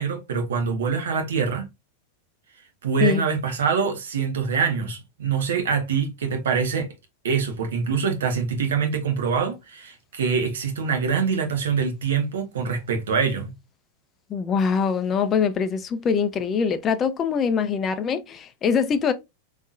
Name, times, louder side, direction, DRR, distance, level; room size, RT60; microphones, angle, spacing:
voice 1, 0.0-1.7 2.8-6.9 7.2-13.5, right 6 dB, 60° right, 0.9 m, -24 dB
voice 2, 14.3-19.1, left 6 dB, 25° left, 0.5 m, -23 dB
3.6 x 3.1 x 2.4 m
figure-of-eight pair, 90°, 0 cm